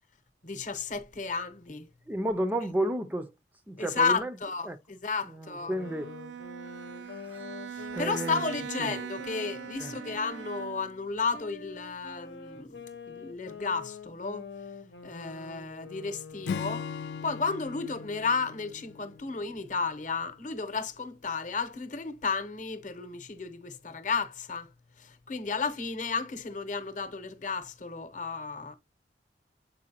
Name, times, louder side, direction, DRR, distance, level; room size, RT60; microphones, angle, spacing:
voice 1, 0.4-1.9 3.8-5.8 7.7-12.8 13.1-14.5 15.0-16.9 17.2-24.7 25.0-28.8, left 4 dB, 45° left, 0.8 m, -33 dB
voice 2, 2.1-3.3 3.7-4.4 4.7-4.8 5.3-6.1 7.9-8.4 8.8-8.9 9.8-9.9, right 1 dB, 10° right, 0.4 m, -31 dB
sound 1, 5.6-10.8 11.3-16.9, left 5 dB, 90° left, 0.9 m, -46 dB
Bowed string instrument, 5.8-11.1, right 8 dB, 75° right, 0.4 m, -41 dB
Acoustic guitar / Strum, 16.4-19.9, left 6 dB, 65° left, 0.3 m, -39 dB
7.4 x 4.5 x 2.8 m
head